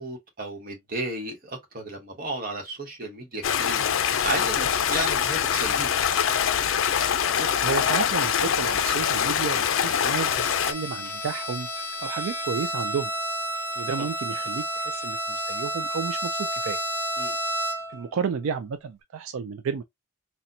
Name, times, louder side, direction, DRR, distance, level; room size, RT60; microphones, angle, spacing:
voice 1, 0.0-3.9 4.2-6.0 14.0-14.1 17.2-17.4, right 2 dB, 40° right, 1.0 m, -33 dB
Stream, 3.4-10.7, left 8 dB, 65° left, 0.4 m, -24 dB
voice 2, 7.4-10.4 10.7-13.1 13.8-16.8 17.9-19.8, right 6 dB, 75° right, 0.4 m, -32 dB
Bowed string instrument, 10.2-18.0, right 1 dB, 15° right, 1.6 m, -31 dB
4.2 x 2.2 x 2.6 m
head